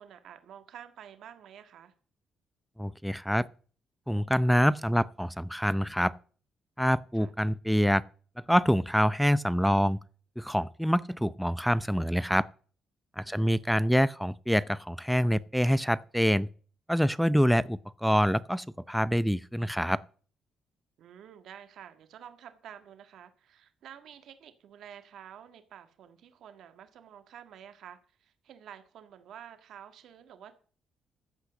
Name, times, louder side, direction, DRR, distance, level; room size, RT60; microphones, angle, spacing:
voice 1, 0.0-1.9 7.1-7.4 13.2-13.6 21.0-30.5, right 9 dB, 75° right, 1.8 m, -50 dB
voice 2, 2.8-3.5 4.1-6.1 6.8-8.0 8.4-10.0 10.4-12.5 13.2-16.5 16.9-20.0, equal, ahead, 0.6 m, -26 dB
14.5 x 5.6 x 7.6 m
cardioid pair, 90°, 0 cm